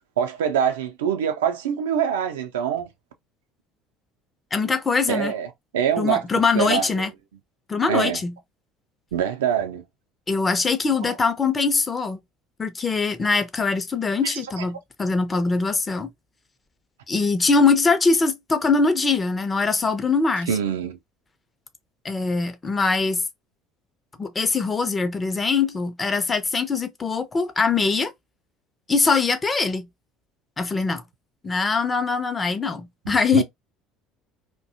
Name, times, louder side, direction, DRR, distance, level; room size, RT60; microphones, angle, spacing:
voice 1, 0.2-2.9 5.1-5.5 5.7-7.1 7.9-8.2 9.1-9.8 11.0-11.2 14.2-14.6 20.5-21.0 33.3-33.4, right 8 dB, 75° right, 0.4 m, -24 dB
voice 2, 4.5-5.3 6.0-7.1 7.7-8.3 10.3-12.2 12.6-16.1 17.1-20.5 22.0-23.2 24.2-28.1 28.9-29.8 30.6-31.0 31.4-33.4, left 4 dB, 25° left, 0.5 m, -22 dB
2.6 x 2.2 x 2.6 m
figure-of-eight pair, 60°, 0 cm